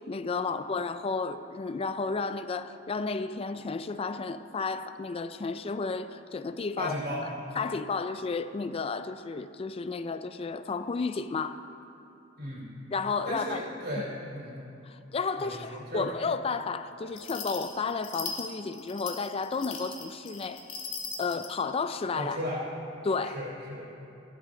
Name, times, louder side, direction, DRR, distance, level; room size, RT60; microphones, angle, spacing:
voice 1, 0.0-6.9 7.6-11.6 12.9-13.7 14.8-20.7 21.2-22.4 23.0-23.4, left 4 dB, 30° left, 11 dB, 0.4 m, -32 dB
voice 2, 6.8-7.2 12.4-12.7 13.2-14.6 15.4-16.2 22.1-22.6 23.2-23.9, equal, 55° right, -4 dB, 3.2 m, -35 dB
sound 1, 17.1-21.5, left 5 dB, 85° left, 1.5 m, -39 dB
15.0 x 11.5 x 3.8 m, 2.8 s
head